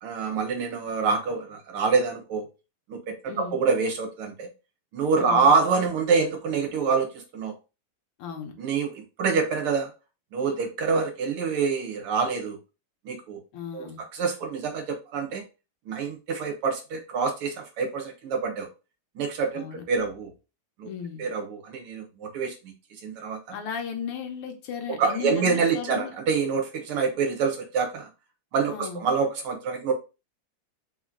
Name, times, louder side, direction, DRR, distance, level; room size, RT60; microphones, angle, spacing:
voice 1, 0.0-2.5 2.9-4.5 4.9-7.5 8.6-9.9 10.3-12.6 13.1-13.4 13.7-15.4 15.9-18.7 19.2-20.3 20.8-20.9 21.2-22.7 23.0-23.4 25.0-28.1 28.5-29.9, right 5 dB, 75° right, 3 dB, 2.1 m, -26 dB
voice 2, 5.2-5.5 8.2-8.5 13.5-14.0 19.5-19.8 20.8-21.3 23.5-26.1 28.7-29.0, left 7 dB, 80° left, 4 dB, 1.9 m, -35 dB
4.5 x 3.1 x 3.7 m, 0.29 s
omnidirectional pair, 2.4 m